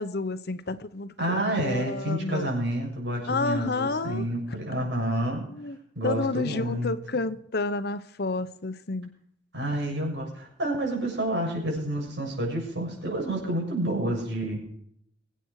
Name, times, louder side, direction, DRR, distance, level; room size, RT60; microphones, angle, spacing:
voice 1, 0.0-2.5 3.3-4.6 5.5-5.8 6.0-9.1, left 3 dB, 60° left, 12 dB, 0.9 m, -30 dB
voice 2, 1.2-5.4 6.0-6.9 9.5-14.6, right 1 dB, 75° right, 0 dB, 7.0 m, -29 dB
24.0 x 9.0 x 4.8 m, 0.70 s
head